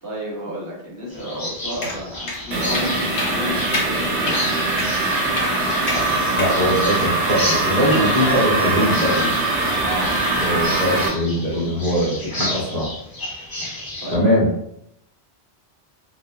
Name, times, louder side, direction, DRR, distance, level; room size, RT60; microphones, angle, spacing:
voice 1, 0.0-4.5 6.3-6.6 7.8-8.9 9.8-10.1 14.0-14.3, equal, 20° right, -5 dB, 0.8 m, -30 dB
sound 1, 1.1-14.1, left 1 dB, 25° left, 0.6 m, -32 dB
sound 2, 1.8-2.0 2.3-2.4 2.7-2.9 3.2-3.4 3.7-3.9 4.3-4.4 4.8-4.9 5.4-5.5 5.9-6.0 6.4-6.6, left 2 dB, 80° left, 0.9 m, -26 dB
sound 3, 2.5-11.1, right 2 dB, 90° right, 0.9 m, -22 dB
voice 2, 6.3-9.3 10.4-12.9 14.1-14.5, equal, 45° right, -3 dB, 0.6 m, -21 dB
3.0 x 2.1 x 2.3 m, 0.77 s
omnidirectional pair, 1.1 m